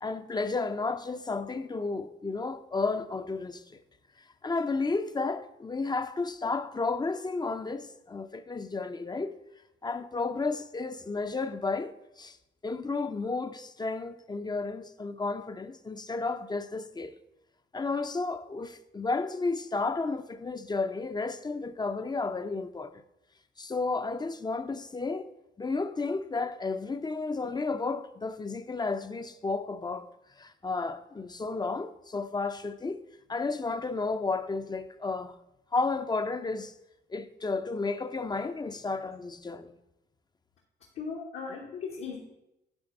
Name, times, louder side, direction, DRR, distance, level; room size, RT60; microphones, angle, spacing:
voice 1, 0.0-3.8 4.4-9.4 9.8-12.4 12.6-17.1 17.7-22.9 23.6-25.3 25.6-30.1 30.4-33.0 33.3-35.4 35.7-36.7 37.1-39.8, left 3 dB, 20° left, 0.5 m, -32 dB
voice 2, 40.9-42.2, left 5 dB, 75° left, 1.4 m, -37 dB
9.7 x 3.4 x 6.5 m
cardioid pair, 90°, 20 cm